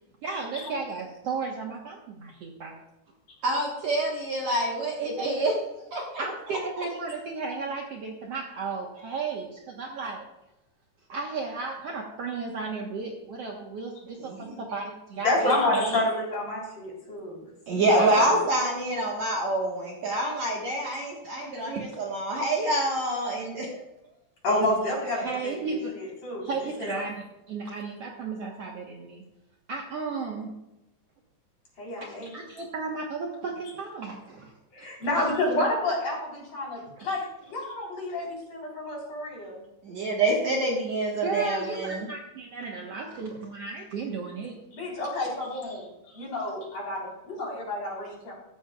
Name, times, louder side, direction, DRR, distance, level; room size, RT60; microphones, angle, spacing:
voice 1, 0.2-2.8 5.0-5.3 6.2-10.2 11.1-16.0 18.0-18.2 18.8-19.0 21.7-21.8 25.2-26.0 26.4-29.2 29.7-30.5 32.0-34.9 35.2-35.3 37.0-37.1 41.2-44.6, right 4 dB, 85° right, -1 dB, 1.4 m, -34 dB
voice 2, 3.4-5.5 5.9-6.2 14.3-14.5 17.7-23.7 39.8-42.1, right 1 dB, 60° right, -2 dB, 2.1 m, -26 dB
voice 3, 15.2-18.4 24.4-27.0 31.8-32.4 34.7-39.6 44.7-48.3, left 1 dB, 40° left, -3 dB, 4.7 m, -29 dB
14.5 x 14.0 x 2.3 m, 0.93 s
omnidirectional pair, 4.6 m